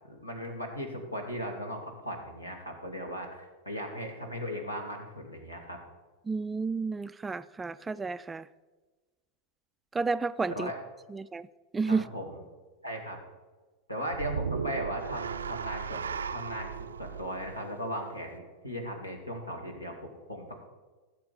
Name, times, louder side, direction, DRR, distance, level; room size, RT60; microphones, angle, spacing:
voice 1, 0.1-5.8 10.5-10.8 11.9-12.4 12.8-13.2 13.9-20.7, equal, 85° left, 2.3 m, -37 dB
voice 2, 6.3-8.5 9.9-10.7 11.1-11.5 11.7-12.1, right 4 dB, 15° right, 0.3 m, -31 dB
sound 1, 14.1-18.4, right 6 dB, 70° right, 0.5 m, -36 dB
16.0 x 7.4 x 5.1 m
figure-of-eight pair, 90°, 0 cm